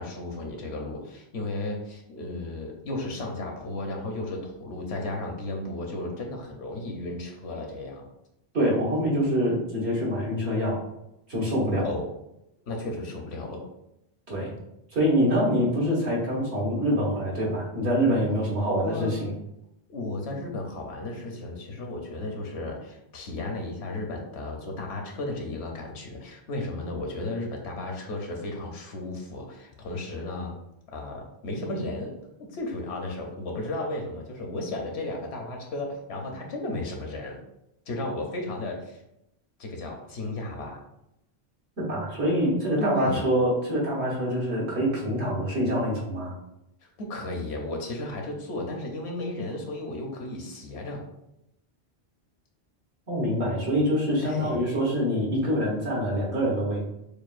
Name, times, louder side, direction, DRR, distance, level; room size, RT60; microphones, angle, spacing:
voice 1, 0.0-8.1 11.8-12.1 12.7-13.6 18.7-19.2 19.9-30.6 30.9-37.4 37.9-39.0 39.6-40.8 42.8-43.3 47.0-51.1 54.2-54.6, left 2 dB, 85° left, 1 dB, 1.1 m, -34 dB
voice 2, 8.5-10.8 11.3-11.9 14.3-14.5 14.9-19.3 41.8-46.3 53.1-56.8, equal, 80° right, -5 dB, 1.9 m, -25 dB
6.8 x 2.3 x 2.5 m, 0.84 s
omnidirectional pair, 1.1 m